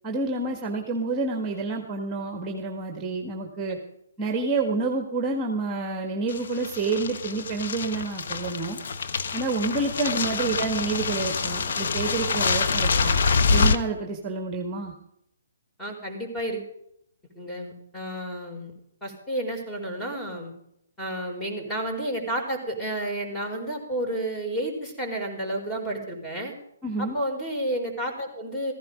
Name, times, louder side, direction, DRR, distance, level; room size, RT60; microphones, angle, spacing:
voice 1, 0.0-3.8 4.2-8.8 9.3-13.2 13.5-14.9 26.8-27.1, right 3 dB, 15° right, 4 dB, 1.8 m, -28 dB
sound 1, 6.3-13.8, left 4 dB, 55° left, 1.2 m, -26 dB
voice 2, 15.8-16.7 17.3-18.7 19.0-20.5 21.0-26.5 27.0-28.7, right 1 dB, 10° left, 1 dB, 4.6 m, -31 dB
16.0 x 15.0 x 5.1 m, 0.75 s
figure-of-eight pair, 135°, 0 cm